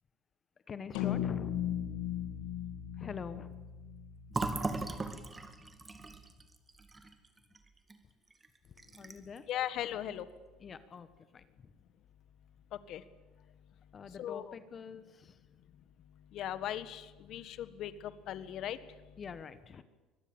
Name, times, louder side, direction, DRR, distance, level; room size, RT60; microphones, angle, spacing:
voice 1, 0.7-1.7 3.0-3.5 9.0-9.5 10.6-11.1 11.3-11.4 13.9-15.4 19.2-19.8, left 6 dB, 30° left, 12 dB, 1.2 m, -45 dB
sound 1, 0.9-5.4, left 10 dB, 90° left, 2.3 m, -37 dB
Fill (with liquid), 4.3-8.0 8.3-8.5 8.8-9.4, right 3 dB, 20° right, 2.1 m, -38 dB
voice 2, 9.5-10.3 12.7-13.0 14.2-14.5 16.3-18.8, left 11 dB, 60° left, 13 dB, 1.5 m, -38 dB
24.0 x 20.0 x 8.8 m, 1.2 s
cardioid pair, 125°, 0 cm